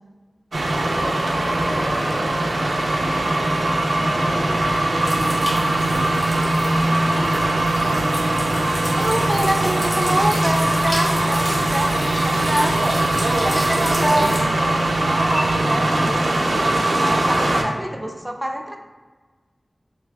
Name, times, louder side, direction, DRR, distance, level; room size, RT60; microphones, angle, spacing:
sound 1, 0.5-17.6, right 1 dB, 80° right, 0.4 m, -21 dB
voice 1, 0.7-2.7 3.9-7.5 13.8-14.8, equal, 65° left, -14 dB, 1.5 m, -34 dB
voice 2, 3.8-4.1 8.9-13.0 13.4-14.8 15.1-16.3 17.0-18.8, right 1 dB, 15° right, 3 dB, 0.4 m, -26 dB
sound 2, 5.0-14.4, equal, 40° left, 1.2 m, -31 dB
3.4 x 2.6 x 3.3 m, 1.4 s
wide cardioid pair, 75°, 0 cm